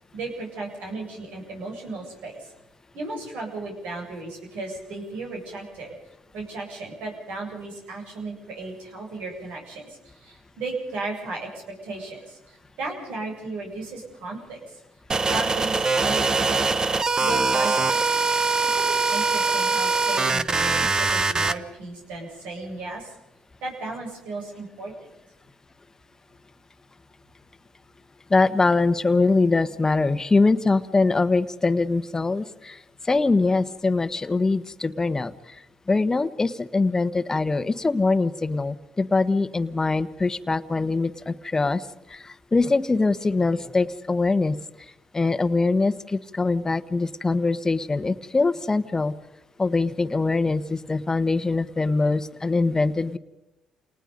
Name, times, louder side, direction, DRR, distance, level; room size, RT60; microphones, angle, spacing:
voice 1, 0.1-2.5 2.9-6.0 6.3-14.8 15.2-16.8 17.2-18.2 18.6-23.1 23.6-24.9, right 3 dB, 80° right, 0 dB, 7.8 m, -35 dB
sound 1, 15.1-21.5, right 4 dB, 30° right, 1.1 m, -22 dB
voice 2, 28.3-32.8 33.0-35.3 35.9-41.8 42.1-44.6 45.1-49.1 49.6-53.2, left 3 dB, 25° left, 11 dB, 1.3 m, -23 dB
28.5 x 19.5 x 5.3 m, 0.94 s
supercardioid pair, 70°, 2 cm